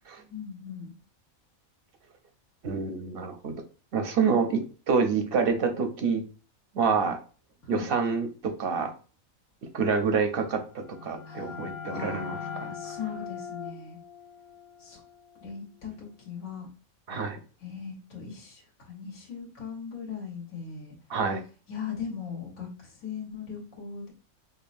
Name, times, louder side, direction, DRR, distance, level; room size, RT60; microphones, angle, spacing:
voice 1, 0.3-0.9 7.7-7.8 11.3-11.6 11.9-14.0 14.8-15.0 15.4-16.7 17.6-20.9 21.7-24.1, left 6 dB, 80° left, -3 dB, 1.6 m, -39 dB
voice 2, 2.6-3.5 3.9-6.2 6.7-7.2 7.7-8.9 9.7-12.7 17.1-17.4 21.1-21.4, right 5 dB, 60° right, 5 dB, 0.6 m, -27 dB
sound 1, 10.6-16.2, left 7 dB, 60° left, 0.7 m, -41 dB
5.3 x 2.2 x 2.5 m, 0.36 s
omnidirectional pair, 1.5 m